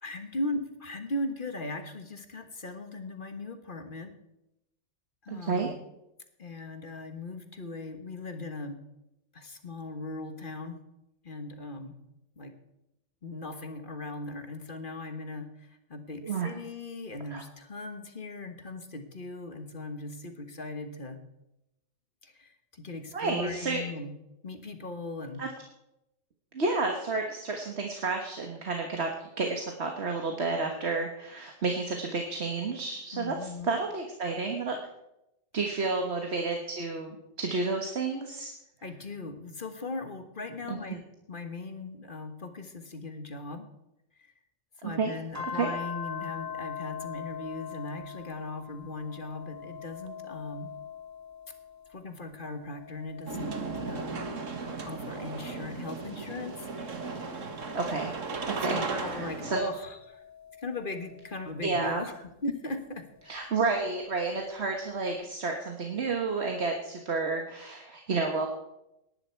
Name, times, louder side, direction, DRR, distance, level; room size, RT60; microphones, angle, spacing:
voice 1, 0.0-4.1 5.2-5.8 6.4-8.8 9.3-10.8 11.2-12.0 12.4-12.5 13.2-21.2 22.2-24.1 24.4-25.4 33.1-33.7 35.6-35.9 38.8-43.7 44.2-44.3 44.8-50.7 51.9-53.5 53.9-54.4 54.8-56.7 58.5-60.2 60.6-63.5, left 2 dB, 40° left, 7 dB, 1.5 m, -38 dB
voice 2, 5.3-5.7 16.2-16.5 17.3-17.4 23.1-23.8 25.4-25.5 26.5-34.8 35.5-38.5 40.7-40.8 45.0-45.1 45.5-45.7 57.7-58.1 58.4-59.6 61.6-62.0 63.2-68.5, right 3 dB, 55° right, 3 dB, 1.7 m, -31 dB
sound 1, 45.3-52.1 52.5-55.4 56.0-58.8 59.5-62.0 63.3-64.4, left 7 dB, 15° right, 1.1 m, -43 dB
sound 2, 53.3-59.6, right 4 dB, 75° right, 1.7 m, -36 dB
18.0 x 11.0 x 4.6 m, 0.87 s
omnidirectional pair, 1.3 m